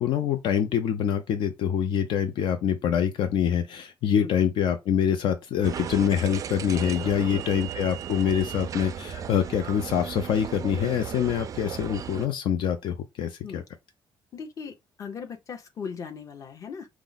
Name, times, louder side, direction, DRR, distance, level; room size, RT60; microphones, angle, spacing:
voice 1, 0.0-13.6, left 8 dB, 70° left, 0.5 m, -25 dB
sound 1, 5.6-12.3, right 8 dB, 40° right, 0.3 m, -36 dB
voice 2, 14.3-16.9, left 6 dB, 40° left, 0.8 m, -38 dB
4.6 x 2.1 x 3.9 m
cardioid pair, 165°, 9 cm